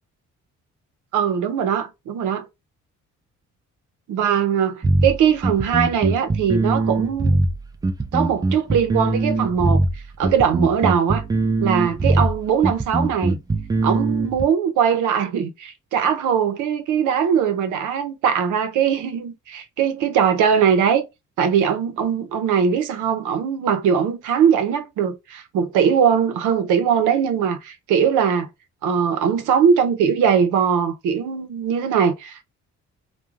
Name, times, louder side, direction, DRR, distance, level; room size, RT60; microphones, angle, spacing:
voice 1, 1.1-2.5 4.1-7.4 8.1-9.8 10.2-11.2 11.6-13.4 13.8-21.0 21.4-28.5 28.8-32.4, right 7 dB, 85° right, 0.6 m, -20 dB
sound 1, 4.8-14.4, right 2 dB, 15° right, 0.3 m, -21 dB
2.4 x 2.2 x 3.0 m
cardioid pair, 90°, 30 cm